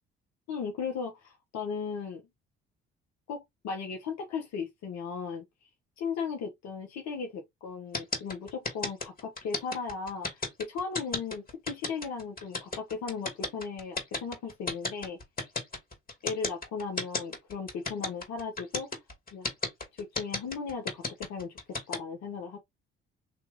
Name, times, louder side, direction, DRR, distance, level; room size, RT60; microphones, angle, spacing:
voice 1, 0.5-2.2 3.3-5.4 6.0-15.2 16.2-18.9 19.3-19.5 20.0-21.6 21.9-22.6, left 5 dB, 65° left, 1.1 m, -36 dB
sound 1, 7.9-22.0, left 3 dB, 30° left, 2.3 m, -33 dB
4.5 x 3.0 x 3.6 m
hypercardioid pair, 50°, 29 cm